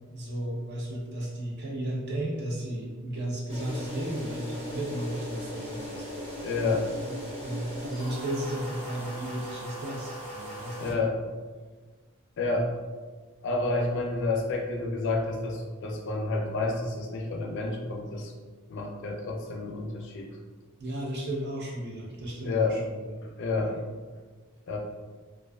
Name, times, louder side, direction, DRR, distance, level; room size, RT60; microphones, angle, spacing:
voice 1, 0.1-6.3 7.0-11.0 20.8-23.2 23.5-23.8, right 1 dB, 50° right, -3 dB, 0.6 m, -34 dB
sound 1, 3.5-10.9, equal, 30° right, 0.9 m, -38 dB
voice 2, 6.4-6.9 10.8-11.2 12.4-12.7 13.4-18.3 18.7-20.3 22.4-22.7 23.2-23.8 24.7-24.8, left 3 dB, 55° left, 1 dB, 0.4 m, -29 dB
2.4 x 2.3 x 2.2 m, 1.4 s
head